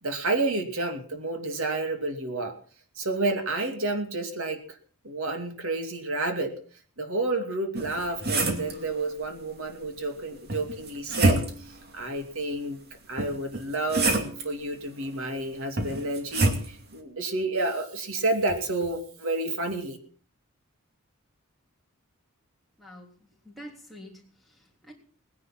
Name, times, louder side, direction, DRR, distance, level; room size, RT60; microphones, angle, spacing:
voice 1, 0.0-2.5 3.0-4.8 5.0-6.5 7.0-12.8 13.1-14.2 14.4-20.0, right 2 dB, 70° right, 6 dB, 2.6 m, -30 dB
sound 1, 7.7-8.8 10.5-11.7 13.2-14.5 15.8-16.7, right 2 dB, 45° right, 2.5 m, -26 dB
voice 2, 22.8-23.1 23.4-24.9, equal, ahead, -2 dB, 3.3 m, -47 dB
19.5 x 10.5 x 6.0 m, 0.43 s
head